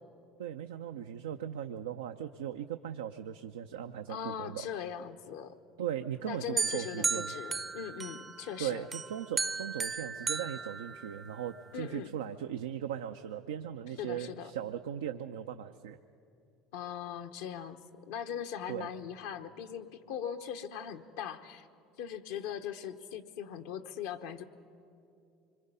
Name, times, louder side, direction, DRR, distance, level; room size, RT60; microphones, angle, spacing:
voice 1, 0.4-4.7 5.8-7.3 8.6-16.0 18.7-18.9, right 9 dB, 90° right, 7 dB, 0.5 m, -38 dB
voice 2, 4.1-5.5 6.2-8.8 11.7-12.1 14.0-14.5 16.7-17.8 18.1-21.7 22.0-24.4, left 8 dB, 80° left, 6 dB, 1.0 m, -40 dB
sound 1, 6.6-8.5 8.9-11.4, right 4 dB, 30° right, 0.6 m, -35 dB
25.0 x 22.5 x 5.5 m, 2.6 s
hypercardioid pair, 80°, 0 cm